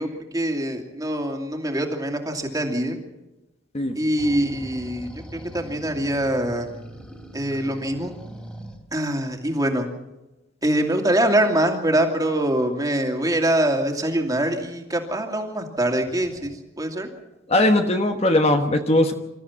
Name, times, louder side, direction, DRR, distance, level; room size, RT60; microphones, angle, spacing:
voice 1, 0.0-3.0 3.9-6.7 7.3-8.2 8.9-9.9 10.6-17.1, right 1 dB, 20° right, 3 dB, 2.6 m, -24 dB
sound 1, 4.2-8.8 16.0-16.5, right 1 dB, 5° left, 2.9 m, -41 dB
voice 2, 17.5-19.1, left 1 dB, 35° left, 5 dB, 1.2 m, -19 dB
26.0 x 14.0 x 7.3 m, 1.0 s
head